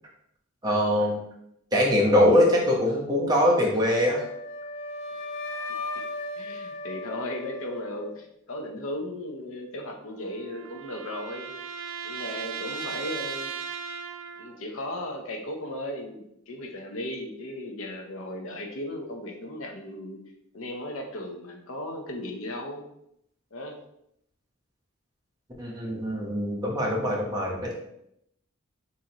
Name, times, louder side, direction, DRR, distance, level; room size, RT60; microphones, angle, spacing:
voice 1, 0.6-1.2 1.7-4.2 25.6-27.7, left 1 dB, 20° right, -3 dB, 1.0 m, -22 dB
Wind instrument woodwind instrument, 4.1-8.2, left 2 dB, 65° left, 0.4 m, -36 dB
voice 2, 6.3-11.5 12.0-13.5 14.4-20.2 20.5-22.8 23.5-23.8, left 1 dB, 90° left, 3 dB, 0.9 m, -36 dB
sound 1, 9.9-14.6, right 7 dB, 85° right, 0.4 m, -37 dB
6.2 x 2.9 x 3.0 m, 0.76 s
head